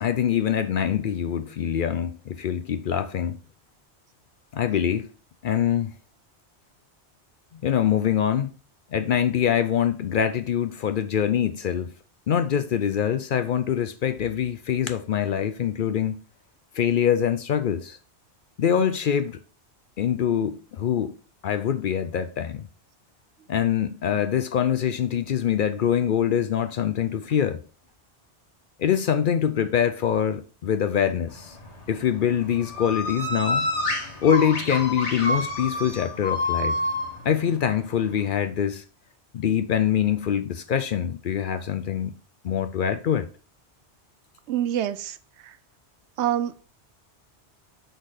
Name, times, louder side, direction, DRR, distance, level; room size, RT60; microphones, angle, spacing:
voice 1, 0.0-3.4 4.5-5.1 5.4-5.9 7.5-8.5 8.9-11.9 12.3-16.2 16.7-18.0 18.6-19.4 20.0-21.1 21.4-22.7 23.5-27.6 28.8-31.6 31.9-33.7 34.2-36.8 37.2-38.8 39.3-42.1 42.4-43.3, left 9 dB, 60° left, 0.6 m, -24 dB
sound 1, 31.3-38.4, left 2 dB, 80° left, 1.9 m, -29 dB
voice 2, 44.5-45.2 46.2-46.5, right 11 dB, 80° right, 0.9 m, -25 dB
6.2 x 4.0 x 4.9 m
omnidirectional pair, 1.2 m